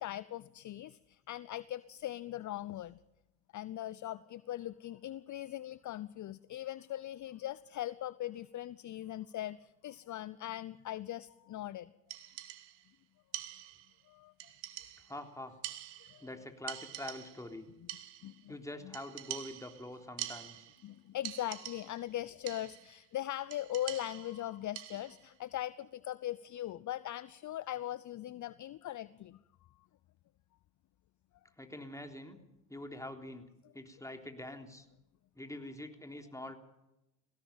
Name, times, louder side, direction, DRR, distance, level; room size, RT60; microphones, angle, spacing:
voice 1, 0.0-3.0 3.5-11.9 14.1-14.3 16.0-16.3 18.2-18.6 18.8-19.0 20.8-29.4, left 13 dB, 40° left, 18 dB, 0.7 m, -40 dB
sound 1, 12.1-12.9 13.3-14.0 14.4-15.2 15.6-16.4 16.7-17.5 17.9-18.4 18.9-20.9 21.2-22.1 22.5-23.0 23.5-25.3, right 15 dB, 70° right, 1.8 m, -45 dB
voice 2, 15.1-15.5 16.2-17.7 18.5-20.7 31.6-32.4 32.7-33.5 33.7-34.9 35.4-36.6, left 1 dB, 5° left, 5 dB, 3.6 m, -45 dB
21.0 x 17.5 x 7.4 m, 0.91 s
hypercardioid pair, 65°, 46 cm